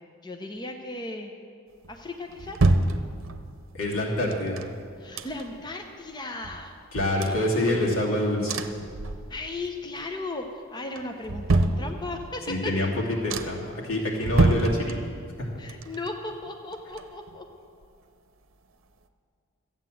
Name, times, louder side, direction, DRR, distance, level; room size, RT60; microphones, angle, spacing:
voice 1, 0.2-1.3 1.9-2.6 5.0-6.7 7.2-7.6 9.3-12.7 15.6-17.4, left 2 dB, 20° left, 3 dB, 0.8 m, -36 dB
sound 1, 1.8-3.6 4.3-5.7 6.1-6.2 6.4-8.1 8.5-9.7 10.0-10.5 10.9-12.4 12.8-12.9 13.3-13.8 14.2-15.4 15.7-17.5 17.8-17.9, right 2 dB, 75° right, 0.7 m, -28 dB
voice 2, 3.7-4.6 6.9-8.6 12.5-12.9 13.2-15.0 15.4-15.5, left 1 dB, 80° left, -3 dB, 2.7 m, -26 dB
13.5 x 8.9 x 7.7 m, 2.3 s
head